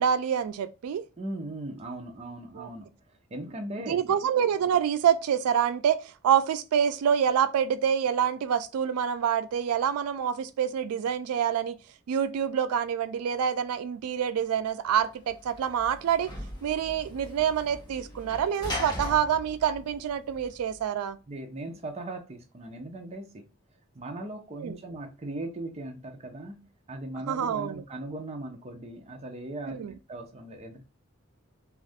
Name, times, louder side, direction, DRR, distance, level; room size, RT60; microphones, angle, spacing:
voice 1, 0.0-1.0 2.6-2.7 3.9-11.8 12.1-16.3 16.6-21.2 24.6-24.8 27.3-27.8 29.7-29.9, right 8 dB, 90° right, 0.3 m, -26 dB
voice 2, 1.2-2.9 3.3-4.2 21.3-23.5 23.9-26.6 26.9-29.8 30.1-30.8, right 1 dB, 30° right, 0.5 m, -38 dB
Sliding door / Slam, 14.9-20.8, left 1 dB, 20° left, 0.9 m, -40 dB
2.6 x 2.4 x 3.4 m
head